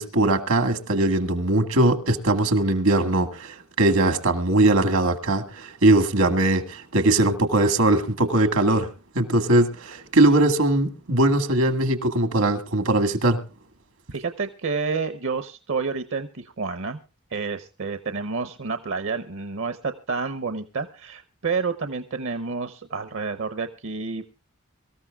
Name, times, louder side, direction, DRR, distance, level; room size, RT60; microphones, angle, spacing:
voice 1, 0.0-8.9 9.2-13.4, right 2 dB, 80° right, 1.8 m, -20 dB
voice 2, 14.1-17.0 17.3-24.2, right 4 dB, 60° right, 0.8 m, -29 dB
24.0 x 14.0 x 2.3 m
head